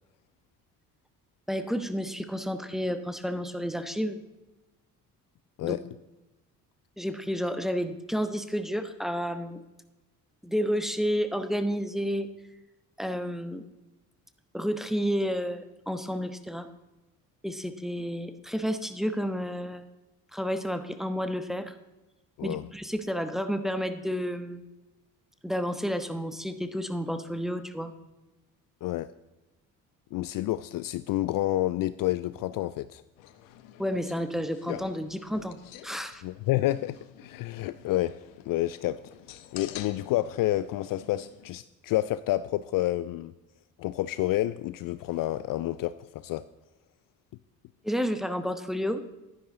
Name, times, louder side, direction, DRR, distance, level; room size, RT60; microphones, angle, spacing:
voice 1, 1.5-4.2 5.6-5.7 7.0-9.6 10.4-12.3 13.0-13.6 14.5-16.7 17.4-19.8 20.3-21.7 22.4-24.6 25.4-27.9 33.8-35.6 35.8-36.2 47.8-49.0, equal, ahead, 9 dB, 1.1 m, -30 dB
voice 2, 28.8-29.1 30.1-33.0 36.2-38.2 38.4-39.0 39.5-43.3 43.8-46.4, left 15 dB, 50° left, 15 dB, 0.5 m, -29 dB
sound 1, 33.2-41.5, left 11 dB, 75° left, 0.9 m, -47 dB
11.5 x 10.0 x 3.8 m, 1.1 s
hypercardioid pair, 50°, 43 cm